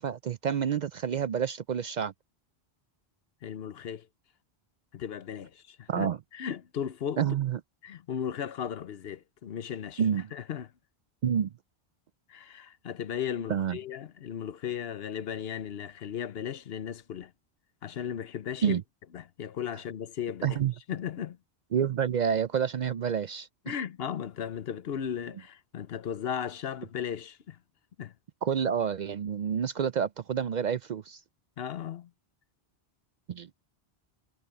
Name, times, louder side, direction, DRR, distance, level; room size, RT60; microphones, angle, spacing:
voice 1, 0.0-2.1 5.9-6.2 7.2-7.6 10.0-10.3 11.2-11.5 13.5-13.8 18.6-18.8 20.4-20.7 21.7-23.8 28.4-31.2 33.3-33.5, right 8 dB, 55° right, 0.5 m, -28 dB
voice 2, 3.4-4.1 4.9-6.1 6.3-7.2 7.8-10.0 10.3-10.7 12.3-17.3 17.8-18.8 19.1-20.5 20.9-21.4 23.7-27.6 28.0-28.1 31.6-32.1, left 8 dB, 70° left, 1.0 m, -36 dB
omnidirectional pair, 1.1 m